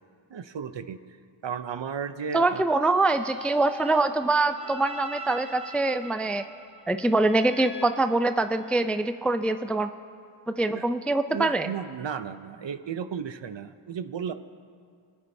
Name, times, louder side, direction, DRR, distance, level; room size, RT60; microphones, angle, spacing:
voice 1, 0.3-1.0 1.4-2.6 10.7-10.9 11.3-14.3, right 7 dB, 65° right, 11 dB, 0.6 m, -34 dB
voice 2, 2.3-6.4 6.9-9.9 10.5-11.7, right 2 dB, 5° left, 9 dB, 0.3 m, -24 dB
sound 1, 2.9-8.9, right 2 dB, 15° right, 1.0 m, -43 dB
27.5 x 9.5 x 2.7 m, 2.3 s
wide cardioid pair, 40°, 48 cm